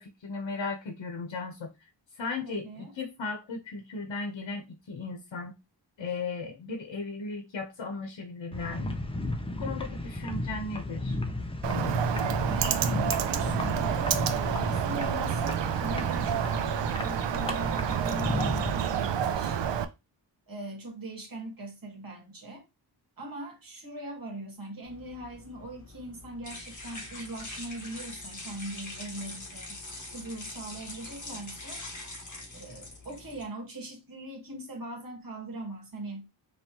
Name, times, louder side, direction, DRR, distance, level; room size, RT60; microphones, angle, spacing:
voice 1, 0.0-1.7 2.2-5.5 6.0-9.0 9.6-11.1, left 3 dB, 75° left, 1.0 m, -36 dB
voice 2, 2.4-2.9 12.4-19.9 20.5-22.6 23.2-29.8 30.1-31.8 32.5-36.3, right 1 dB, 50° right, 1.7 m, -41 dB
sound 1, 8.5-18.7, left 1 dB, 15° left, 0.5 m, -34 dB
Bird, 11.6-19.9, right 8 dB, 75° right, 0.5 m, -29 dB
sound 2, 24.8-33.4, left 2 dB, 40° left, 1.6 m, -43 dB
4.2 x 3.2 x 2.9 m
wide cardioid pair, 135°, 45 cm